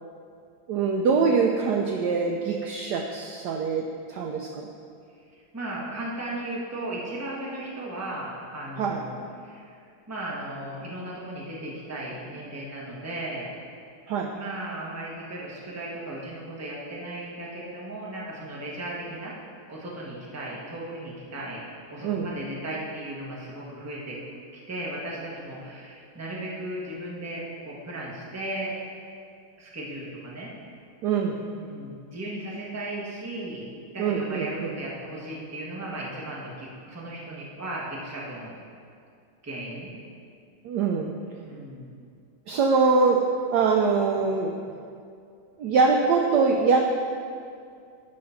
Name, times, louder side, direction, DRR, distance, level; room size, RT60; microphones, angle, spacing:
voice 1, 0.7-3.8 4.1-4.7 8.8-9.0 14.1-14.3 22.0-22.3 31.0-31.4 34.0-34.7 40.6-41.1 42.5-43.2 43.5-44.6 45.6-46.9, right 4 dB, 75° right, 2 dB, 0.9 m, -23 dB
voice 2, 5.3-9.2 9.4-9.8 10.1-13.5 14.3-19.3 19.7-24.2 24.5-28.7 29.6-30.5 31.6-33.7 33.9-38.6 39.4-39.9 41.4-41.9, right 1 dB, 10° right, -5 dB, 0.8 m, -36 dB
10.5 x 3.8 x 5.7 m, 2.4 s
omnidirectional pair, 2.2 m